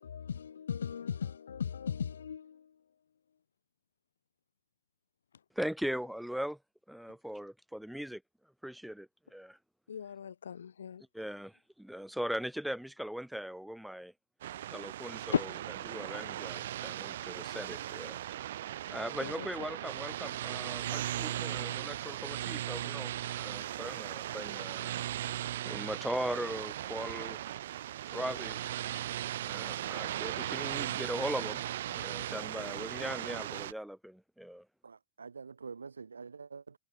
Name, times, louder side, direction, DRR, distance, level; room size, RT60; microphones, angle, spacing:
voice 1, 0.0-2.7 9.9-11.0 15.3-15.4 19.2-19.5, left 7 dB, 70° left, 2.2 m, -36 dB
voice 2, 5.5-6.6 6.9-8.2 8.6-9.6 11.1-14.1 14.7-15.5 15.9-18.2 18.9-24.9 25.6-27.4 28.1-28.6 29.4-31.6 31.9-34.6, equal, ahead, 1.4 m, -39 dB
sound 1, 14.4-33.7, right 12 dB, 60° right, 3.7 m, -38 dB
voice 3, 34.8-36.8, right 5 dB, 75° right, 6.5 m, -46 dB
figure-of-eight pair, 90°, 0 cm